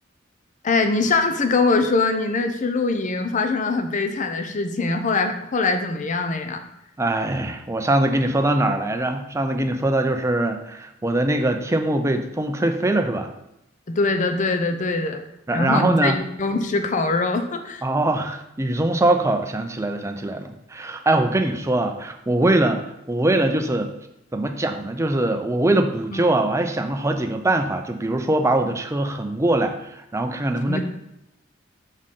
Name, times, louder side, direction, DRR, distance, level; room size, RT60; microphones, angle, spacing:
voice 1, 0.6-6.6 13.9-15.2 15.5-17.8 26.1-26.3 30.7-30.8, left 3 dB, 40° left, 7 dB, 0.5 m, -23 dB
voice 2, 7.0-13.3 15.5-16.2 17.8-23.9 24.3-30.8, right 1 dB, 15° right, 5 dB, 0.5 m, -22 dB
6.2 x 4.2 x 3.7 m, 0.85 s
head